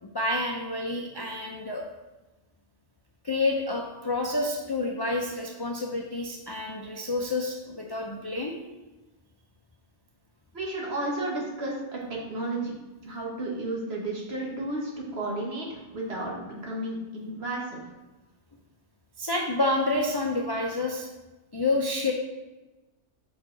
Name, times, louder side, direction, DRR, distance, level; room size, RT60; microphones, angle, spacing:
voice 1, 0.0-1.8 3.2-8.5 19.2-21.1 21.5-22.1, left 2 dB, 40° left, 0 dB, 0.3 m, -28 dB
voice 2, 10.5-12.7 13.1-17.8, right 2 dB, 60° right, -3 dB, 1.6 m, -33 dB
5.5 x 4.8 x 3.8 m, 1.1 s
omnidirectional pair, 1.2 m